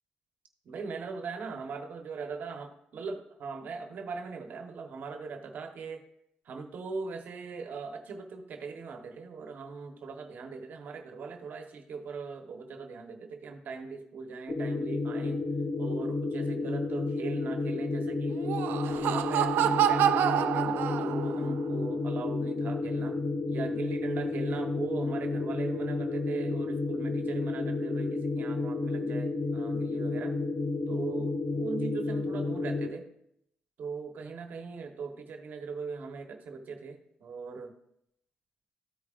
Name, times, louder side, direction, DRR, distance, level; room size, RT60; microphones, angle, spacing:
voice 1, 0.6-6.0 6.4-15.4 15.8-18.4 18.8-23.2 23.5-30.4 30.9-33.0 33.8-37.7, right 4 dB, 65° right, 4 dB, 1.2 m, -40 dB
sound 1, 14.5-32.9, left 3 dB, 35° left, 1.2 m, -31 dB
Laughter, 18.3-21.5, right 11 dB, 90° right, 0.4 m, -27 dB
14.5 x 4.9 x 2.5 m, 0.76 s
cardioid pair, 95°, 3 cm